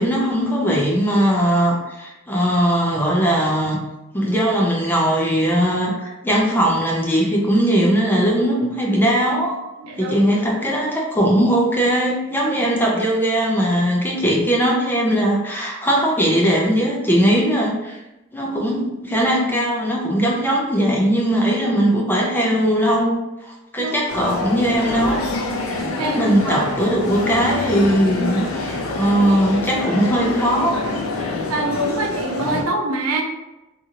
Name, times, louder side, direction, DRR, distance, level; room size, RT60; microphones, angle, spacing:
voice 1, 0.0-3.8 4.1-9.6 10.0-18.0 18.3-25.3 25.6-30.8, equal, 10° left, -2 dB, 0.5 m, -19 dB
voice 2, 9.8-10.2 23.8-24.0 26.0-26.6 31.5-33.2, right 2 dB, 80° right, 3 dB, 0.5 m, -24 dB
sound 1, 24.1-32.6, left 2 dB, 70° left, 0.5 m, -26 dB
2.7 x 2.5 x 2.8 m, 0.99 s
head